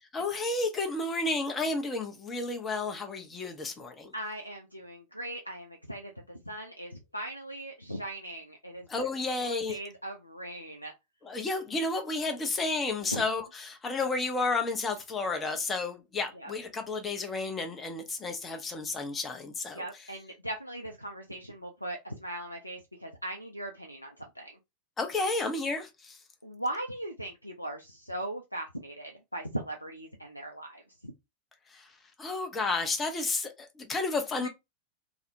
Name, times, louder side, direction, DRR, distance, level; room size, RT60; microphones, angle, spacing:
voice 1, 0.1-4.1 8.9-9.8 11.2-19.8 25.0-26.2 31.7-34.5, left 3 dB, 20° left, 0.6 m, -32 dB
voice 2, 4.1-8.9 9.4-10.9 13.1-13.3 16.4-16.5 19.7-24.5 26.4-31.1 34.4-34.5, right 1 dB, 90° left, 0.3 m, -39 dB
2.4 x 2.0 x 2.7 m
figure-of-eight pair, 90°, 0 cm